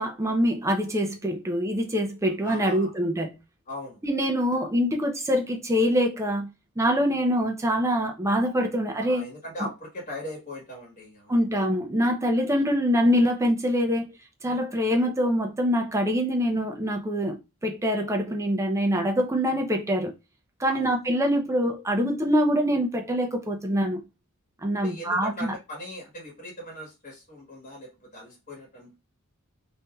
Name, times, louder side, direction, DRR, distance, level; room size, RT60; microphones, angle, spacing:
voice 1, 0.0-3.4 4.0-6.5 6.8-9.2 9.6-9.7 11.3-14.2 14.4-20.1 20.6-24.0 24.6-25.5, equal, 15° right, 0.5 m, -24 dB
voice 2, 2.4-2.9 3.7-4.0 9.0-11.5 20.6-21.0 24.7-28.9, left 1 dB, 35° left, 1.3 m, -40 dB
3.3 x 2.7 x 2.3 m
head